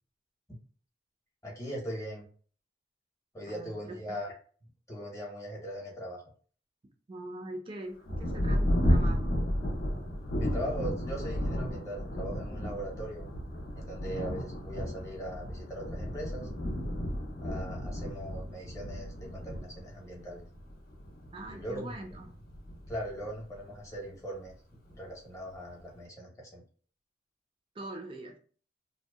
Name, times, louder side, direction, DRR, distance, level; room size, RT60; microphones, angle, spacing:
voice 1, 1.4-2.3 3.3-4.3 4.9-6.2 10.4-13.2 13.8-16.5 17.4-20.4 21.5-21.9 22.9-24.5 24.9-26.6, equal, 15° left, 0.8 m, -40 dB
voice 2, 3.5-4.0 7.1-9.4 21.3-22.3 27.8-28.4, right 1 dB, 30° right, 0.4 m, -42 dB
Thunder, 8.1-24.1 24.9-25.0 25.5-26.0, equal, 50° left, 0.5 m, -33 dB
2.6 x 2.1 x 2.2 m
head